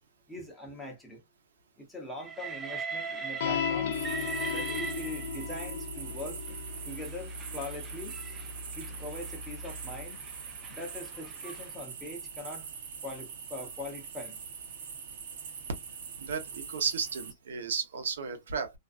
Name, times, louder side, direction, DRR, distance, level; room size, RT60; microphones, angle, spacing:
voice 1, 0.3-1.2 1.8-4.0 4.5-6.6 6.8-8.2 8.7-10.2 10.7-12.7 13.0-14.4, left 1 dB, 5° left, 0.8 m, -42 dB
Train, 2.2-5.6 6.5-11.7, right 5 dB, 10° right, 0.5 m, -41 dB
sound 1, 3.4-10.1, left 7 dB, 60° left, 0.3 m, -37 dB
sound 2, 3.9-17.3, right 6 dB, 55° right, 0.8 m, -43 dB
voice 2, 16.2-18.7, right 6 dB, 90° right, 0.8 m, -33 dB
2.5 x 2.2 x 2.4 m
hypercardioid pair, 160°, 0 cm